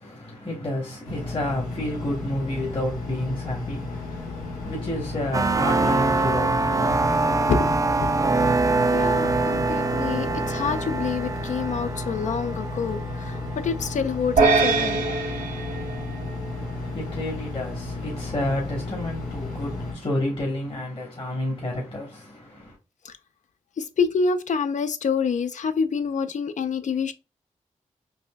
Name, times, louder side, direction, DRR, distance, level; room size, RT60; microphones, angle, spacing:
voice 1, 0.0-7.1 16.5-22.6, left 1 dB, 40° left, 1.2 m, -30 dB
Engine, 1.0-19.9, left 2 dB, 90° left, 0.8 m, -33 dB
sound 1, 5.3-13.9, right 3 dB, 25° right, 0.4 m, -24 dB
voice 2, 8.9-15.1 15.4-15.6 23.0-23.1 23.8-27.1, left 5 dB, 60° left, 0.4 m, -27 dB
sound 2, 14.4-16.8, right 4 dB, 75° right, 0.8 m, -23 dB
4.1 x 2.6 x 2.2 m
supercardioid pair, 45°, 14 cm